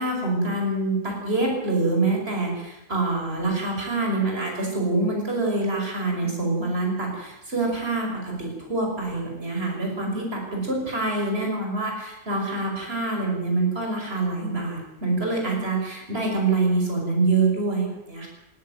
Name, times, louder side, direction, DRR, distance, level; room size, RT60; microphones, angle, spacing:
voice 1, 0.0-18.3, right 2 dB, 40° right, 0 dB, 6.0 m, -25 dB
19.5 x 16.0 x 9.2 m, 0.97 s
omnidirectional pair, 1.6 m